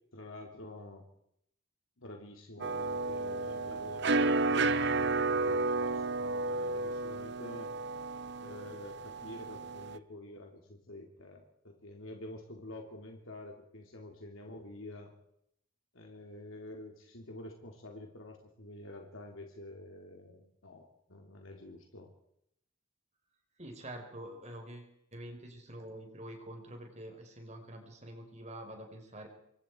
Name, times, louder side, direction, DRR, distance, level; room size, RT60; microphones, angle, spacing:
voice 1, 0.1-1.0 2.0-7.7 8.4-15.1 15.9-22.1, left 1 dB, 75° left, 2 dB, 3.1 m, -48 dB
sound 1, 2.6-10.0, right 3 dB, 55° right, 0.8 m, -32 dB
voice 2, 23.6-29.3, right 1 dB, 35° right, 3 dB, 4.2 m, -46 dB
27.0 x 22.0 x 4.6 m, 0.74 s
head